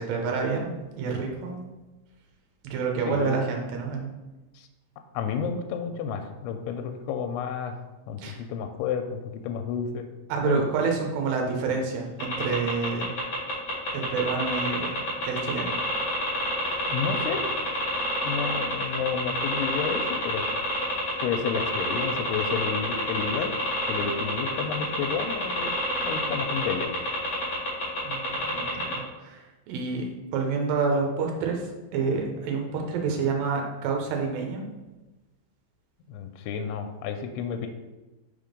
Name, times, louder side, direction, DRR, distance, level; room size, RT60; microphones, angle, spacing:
voice 1, 0.0-1.6 2.6-4.1 8.2-8.4 10.3-13.1 13.9-15.7 28.0-34.6, right 5 dB, 70° right, 1 dB, 2.4 m, -28 dB
voice 2, 5.1-7.7 8.1-10.1 10.4-10.6 16.9-17.4 18.2-20.5 21.2-23.5 23.9-25.8 26.0-26.9 36.1-37.7, left 6 dB, 85° left, 5 dB, 2.5 m, -31 dB
sound 1, 12.2-28.9, left 1 dB, 30° left, 2.0 m, -29 dB
5.7 x 3.7 x 5.1 m, 1.1 s
omnidirectional pair, 4.7 m